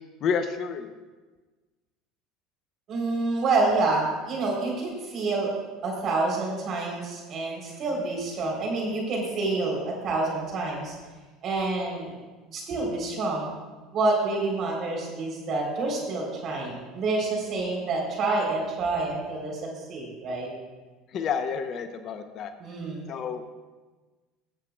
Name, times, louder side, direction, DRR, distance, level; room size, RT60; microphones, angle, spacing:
voice 1, 0.2-0.9 21.1-22.5 23.1-23.6, left 6 dB, 50° left, 9 dB, 0.8 m, -29 dB
voice 2, 2.9-5.5 5.8-11.0 11.4-12.1 12.5-13.5 13.9-20.5 22.6-23.1, right 3 dB, 50° right, -1 dB, 3.6 m, -28 dB
19.5 x 7.6 x 2.3 m, 1.3 s
hypercardioid pair, 75°, 0 cm